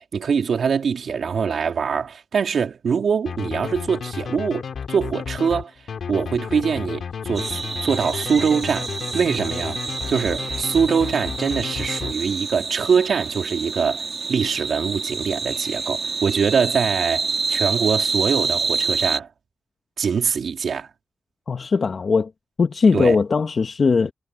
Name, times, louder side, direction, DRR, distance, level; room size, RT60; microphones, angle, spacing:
voice 1, 0.0-5.7 6.1-14.0 14.3-19.3 20.0-20.9 22.9-23.2, right 6 dB, 80° right, 2.9 m, -23 dB
sound 1, 3.3-12.6, left 6 dB, 90° left, 2.5 m, -32 dB
sound 2, 7.3-19.2, right 4 dB, 55° right, 3.7 m, -27 dB
voice 2, 21.5-22.3 22.6-24.1, left 4 dB, 60° left, 1.4 m, -19 dB
cardioid pair, 80°, 0 cm